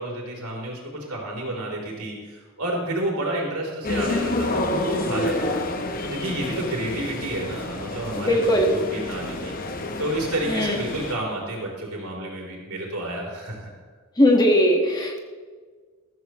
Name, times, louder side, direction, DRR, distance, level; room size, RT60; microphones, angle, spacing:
voice 1, 0.0-5.6 6.0-9.5 10.0-13.7, right 1 dB, 90° right, -2 dB, 3.7 m, -30 dB
sound 1, 3.8-11.1, left 2 dB, 40° left, 1.0 m, -29 dB
voice 2, 8.2-8.7 10.5-10.8 14.2-15.2, equal, 20° left, 1 dB, 1.6 m, -19 dB
14.0 x 14.0 x 3.1 m, 1.5 s
head